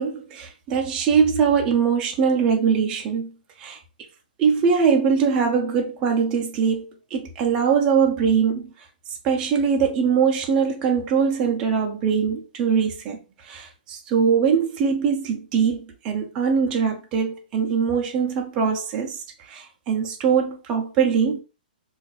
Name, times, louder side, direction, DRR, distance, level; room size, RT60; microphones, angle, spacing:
voice 1, 0.0-3.3 3.6-3.8 4.4-8.6 9.2-13.2 13.5-15.8 16.0-19.2 19.5-21.4, right 6 dB, 15° right, 0.3 m, -22 dB
2.3 x 2.2 x 3.9 m
hypercardioid pair, 175°, 5 cm